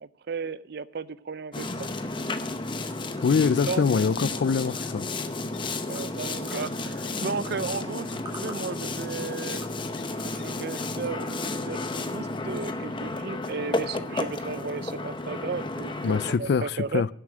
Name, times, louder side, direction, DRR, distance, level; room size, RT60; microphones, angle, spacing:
voice 1, 0.0-1.9 3.7-3.9 5.9-9.6 10.0-17.0, right 5 dB, 60° right, 0.5 m, -35 dB
Boat Water vehicle, 1.5-16.4, left 2 dB, 25° left, 0.7 m, -32 dB
sound 1, 2.0-11.4, right 2 dB, 25° right, 2.1 m, -52 dB
voice 2, 3.2-5.1 16.0-17.1, left 5 dB, 60° left, 0.4 m, -24 dB
sound 2, 3.5-3.6 3.8-4.7 5.0-5.3 5.5-5.6 6.0-7.1 7.5-7.6 8.1-8.2 9.5-9.6 10.0-10.1 10.4-10.5 10.7-10.8, left 9 dB, 85° left, 1.2 m, -51 dB
11.0 x 7.6 x 6.2 m
head